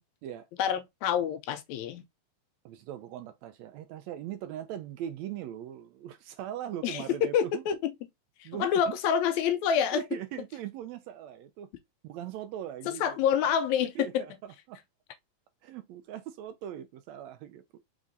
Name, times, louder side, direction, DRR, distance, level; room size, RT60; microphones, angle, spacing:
voice 1, 0.6-2.0 6.8-7.9 8.4-10.0 12.9-14.2, left 8 dB, 80° left, 1.8 m, -27 dB
voice 2, 2.7-7.6 8.4-9.0 9.9-11.7 12.0-13.2 14.0-14.8 15.6-17.8, right 11 dB, 80° right, 1.7 m, -40 dB
4.9 x 3.6 x 2.6 m
omnidirectional pair, 3.4 m